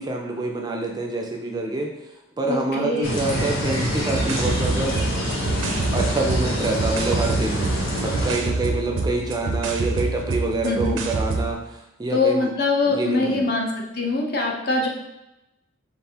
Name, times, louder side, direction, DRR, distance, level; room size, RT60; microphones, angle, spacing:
voice 1, 0.0-2.1 2.4-5.0 5.9-7.7 8.0-12.5 12.9-13.5, right 2 dB, 20° right, 1 dB, 0.3 m, -26 dB
voice 2, 2.5-3.2 10.6-11.0 12.1-13.7 13.9-14.9, left 3 dB, 50° left, 0 dB, 0.6 m, -23 dB
sound 1, 3.0-8.3, equal, 90° left, 1.1 m, -26 dB
sound 2, 4.1-11.5, right 3 dB, 85° right, 0.5 m, -27 dB
3.9 x 3.5 x 2.8 m, 0.94 s
head